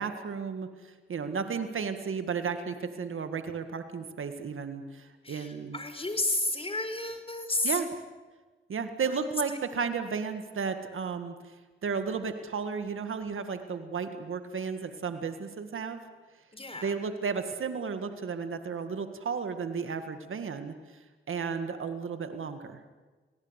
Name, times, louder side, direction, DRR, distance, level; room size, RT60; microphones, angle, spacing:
voice 1, 0.0-5.8 7.6-7.9 8.7-11.3 11.8-16.0 16.8-20.7 21.3-22.8, right 5 dB, 80° right, 8 dB, 1.9 m, -33 dB
voice 2, 5.2-7.8 9.1-9.6 16.5-17.0, left 2 dB, 25° left, 7 dB, 5.2 m, -32 dB
28.0 x 18.5 x 8.2 m, 1.3 s
cardioid pair, 50°, 21 cm